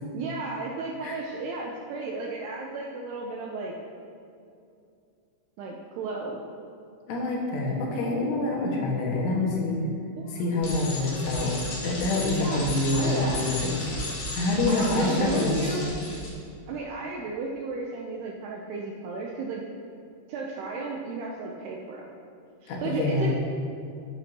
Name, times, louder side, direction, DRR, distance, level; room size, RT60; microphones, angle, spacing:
voice 1, 0.1-3.7 5.6-6.4 10.2-10.5 12.4-13.5 14.7-15.9 16.7-19.6 20.3-22.1 22.6-23.3, right 3 dB, 80° right, -1 dB, 2.4 m, -33 dB
voice 2, 7.1-9.8 10.3-11.6 11.8-13.9 14.3-15.6 22.7-23.3, left 2 dB, 75° left, -3 dB, 4.0 m, -26 dB
Bicycle, 10.6-16.3, left 1 dB, 50° left, 3.4 m, -34 dB
13.5 x 10.5 x 2.9 m, 2.5 s
omnidirectional pair, 5.5 m